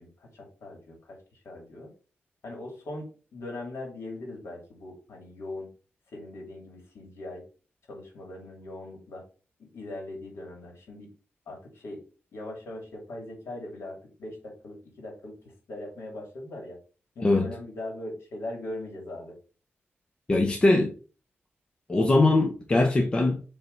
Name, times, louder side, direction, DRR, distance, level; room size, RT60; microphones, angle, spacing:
voice 1, 0.0-1.9 2.4-5.7 6.1-7.4 7.9-9.2 9.6-11.1 11.5-12.0 12.3-15.4 15.7-16.8 17.2-19.4, left 1 dB, 85° left, 2.8 m, -40 dB
voice 2, 20.3-20.9 21.9-23.4, left 2 dB, 20° left, 0.7 m, -21 dB
7.3 x 3.5 x 4.0 m
wide cardioid pair, 180°, 4 cm